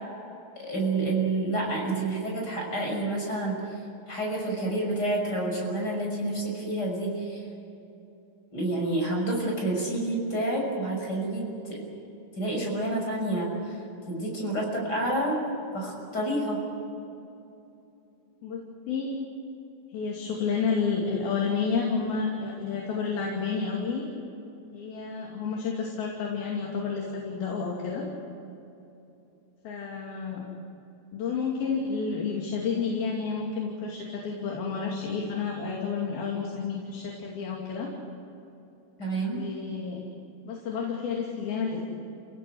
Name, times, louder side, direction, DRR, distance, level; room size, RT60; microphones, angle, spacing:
voice 1, 0.6-3.7 4.1-7.4 8.5-11.8 12.4-13.8 14.1-15.4 15.7-16.6 39.0-39.5, right 2 dB, 25° left, -1 dB, 6.5 m, -29 dB
voice 2, 18.4-19.1 19.9-24.0 24.7-28.1 29.6-30.4 31.1-37.9 39.3-40.0 40.5-41.8, left 5 dB, 65° left, -2 dB, 4.4 m, -30 dB
30.0 x 17.5 x 7.9 m, 2.9 s
omnidirectional pair, 4.7 m